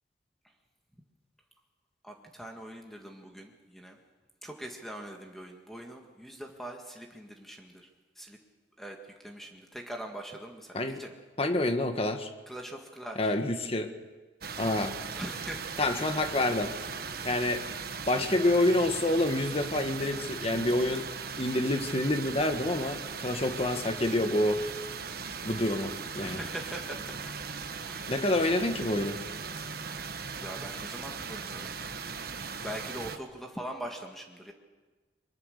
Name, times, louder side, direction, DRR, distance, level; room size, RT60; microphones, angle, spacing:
voice 1, 2.0-4.0 4.4-7.9 8.2-8.4 8.8-11.1 12.5-13.4 15.2-15.8 26.2-27.3 27.8-28.1 30.4-31.7 32.6-34.5, right 1 dB, ahead, 2 dB, 1.9 m, -42 dB
voice 2, 11.4-12.3 13.2-13.9 14.6-15.0 15.8-16.7 17.2-17.6 18.1-21.0 21.4-24.6 25.4-26.4 28.1-29.2, left 1 dB, 35° left, 7 dB, 1.6 m, -27 dB
sound 1, 14.4-33.2, right 5 dB, 55° right, 1.4 m, -38 dB
23.5 x 22.0 x 6.7 m, 1.3 s
head